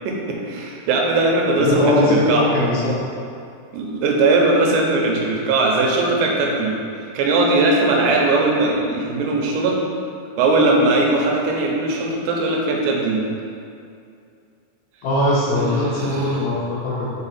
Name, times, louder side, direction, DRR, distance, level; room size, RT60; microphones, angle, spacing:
voice 1, 0.1-1.8 2.1-2.5 3.7-6.8 7.1-9.8 10.4-13.3 15.6-15.7 16.0-16.2, right 2 dB, 85° right, -1 dB, 3.0 m, -19 dB
voice 2, 1.6-3.0 15.0-17.1, left 1 dB, 75° left, -7 dB, 2.4 m, -20 dB
5.8 x 4.9 x 4.2 m, 2.4 s
omnidirectional pair, 5.0 m